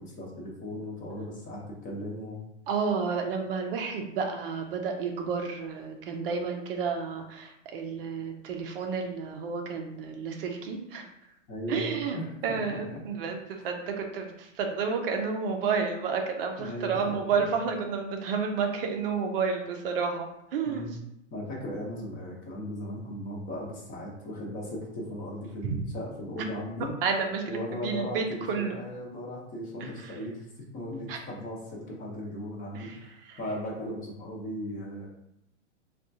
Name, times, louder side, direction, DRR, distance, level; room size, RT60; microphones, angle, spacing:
voice 1, 0.0-2.4 11.5-13.0 13.6-13.7 16.6-17.5 20.7-20.9 21.3-26.9 27.5-35.1, left 1 dB, 20° left, -2 dB, 0.7 m, -37 dB
voice 2, 2.7-11.1 11.7-12.2 12.4-21.0 25.6-25.8 26.4-26.5 27.0-28.8 29.8-30.1 31.1-31.2 32.7-33.0 33.2-33.4, right 5 dB, 50° right, 3 dB, 0.5 m, -31 dB
3.6 x 2.3 x 2.6 m, 0.80 s
hypercardioid pair, 120°, 37 cm